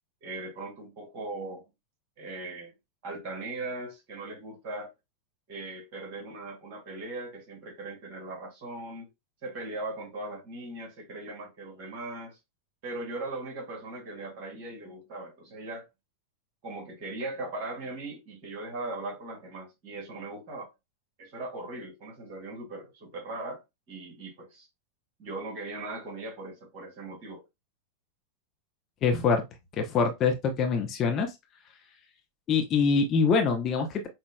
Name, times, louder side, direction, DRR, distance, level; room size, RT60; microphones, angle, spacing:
voice 1, 0.2-1.6 2.2-2.7 3.0-4.9 5.5-9.1 9.4-12.4 12.8-15.9 16.6-20.7 21.2-23.6 23.9-24.7 25.2-27.4, right 2 dB, 45° right, 2.8 m, -39 dB
voice 2, 29.0-29.4 29.8-31.3 32.5-34.1, left 5 dB, 30° left, 0.9 m, -24 dB
6.0 x 2.8 x 2.2 m
figure-of-eight pair, 90°, 0 cm